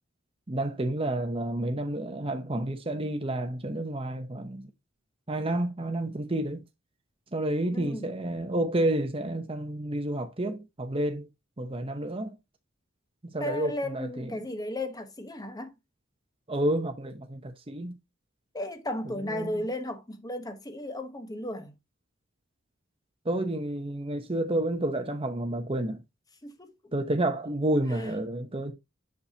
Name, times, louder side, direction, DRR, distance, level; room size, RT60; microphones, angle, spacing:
voice 1, 0.5-4.7 5.3-6.6 7.3-11.3 11.6-12.3 13.2-14.4 16.5-17.9 19.3-19.7 23.2-26.0 26.9-28.7, right 1 dB, 25° right, 0.9 m, -30 dB
voice 2, 7.7-8.1 13.4-15.7 18.5-21.7 26.4-26.7 27.9-28.1, left 1 dB, 20° left, 1.0 m, -35 dB
7.0 x 6.6 x 2.8 m
head